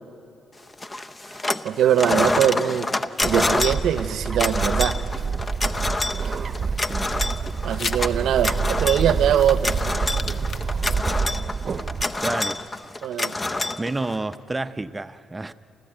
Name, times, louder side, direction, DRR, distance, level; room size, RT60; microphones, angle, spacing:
sound 1, 0.8-1.7 1.9-14.3, left 2 dB, 20° left, 0.7 m, -27 dB
voice 1, 1.3-2.9 3.2-5.0 7.6-9.8 13.0-13.3, right 9 dB, 75° right, 13 dB, 0.8 m, -22 dB
Bird, 3.2-12.0, right 5 dB, 45° right, 0.8 m, -27 dB
sound 2, 5.4-11.4, left 5 dB, 50° left, 0.9 m, -40 dB
voice 2, 12.2-12.6 13.8-15.5, right 2 dB, 20° right, 12 dB, 0.6 m, -29 dB
29.0 x 14.0 x 8.9 m, 2.7 s
cardioid pair, 90°, 0 cm